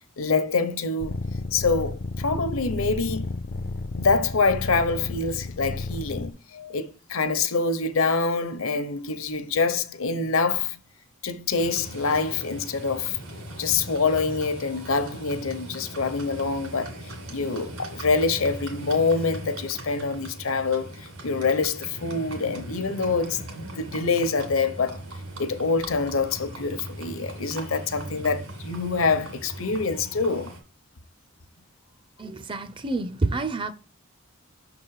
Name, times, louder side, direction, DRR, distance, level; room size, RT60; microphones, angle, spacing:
voice 1, 0.2-1.1 1.5-3.3 4.0-10.8 11.2-13.2 13.6-17.0 17.3-25.0 25.4-30.5, left 4 dB, 75° left, 0.8 m, -25 dB
sound 1, 1.0-6.3, left 3 dB, 40° left, 0.4 m, -32 dB
Livestock farm animals working animals, 11.6-30.6, right 1 dB, 75° right, 2.1 m, -39 dB
voice 2, 32.2-33.7, right 3 dB, 25° right, 0.4 m, -28 dB
6.5 x 3.9 x 4.7 m
head